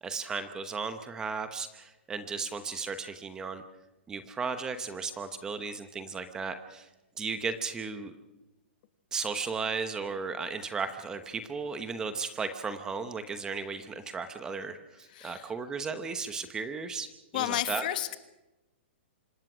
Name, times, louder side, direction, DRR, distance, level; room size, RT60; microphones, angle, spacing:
voice 1, 0.0-3.6 4.1-6.9 7.2-8.1 9.1-17.1 17.3-17.9, right 5 dB, 10° right, 9 dB, 0.9 m, -35 dB
voice 2, 15.1-15.5 17.3-18.2, left 13 dB, 45° left, 10 dB, 1.5 m, -31 dB
26.5 x 20.0 x 6.2 m, 0.99 s
hypercardioid pair, 165°, 6 cm